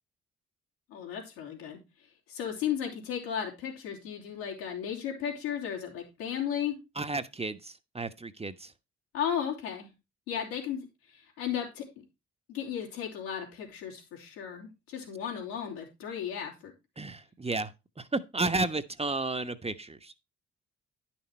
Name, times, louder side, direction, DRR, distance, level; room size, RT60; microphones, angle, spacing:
voice 1, 0.9-1.8 2.3-6.8 9.1-9.9 10.3-10.9 11.1-11.8 12.5-16.7, left 9 dB, 85° left, 3.5 m, -35 dB
voice 2, 6.9-8.7 17.0-17.7 18.0-20.1, right 3 dB, 20° right, 1.1 m, -32 dB
11.0 x 6.2 x 4.4 m
hypercardioid pair, 45°, 31 cm